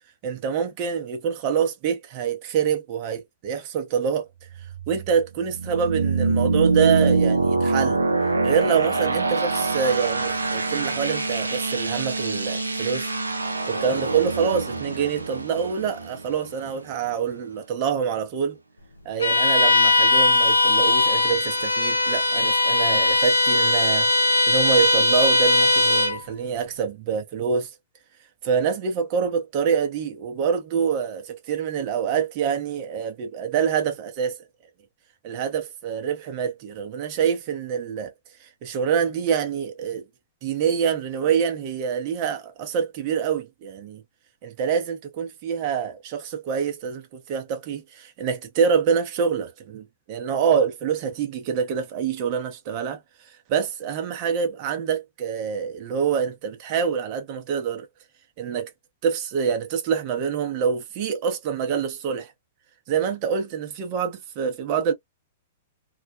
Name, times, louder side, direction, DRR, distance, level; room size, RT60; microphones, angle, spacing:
voice 1, 0.2-4.3 4.9-8.0 8.4-13.1 13.7-18.6 19.0-27.7 28.4-34.4 35.2-38.1 38.4-40.0 40.4-44.0 44.4-53.0 53.5-57.9 58.4-58.7 59.0-62.3 62.9-64.9, right 7 dB, 45° right, 0.8 m, -26 dB
sound 1, 4.5-17.1, right 3 dB, 90° right, 0.4 m, -25 dB
Bowed string instrument, 19.2-26.2, left 2 dB, 85° left, 0.6 m, -19 dB
2.4 x 2.1 x 2.4 m
figure-of-eight pair, 105°, 0 cm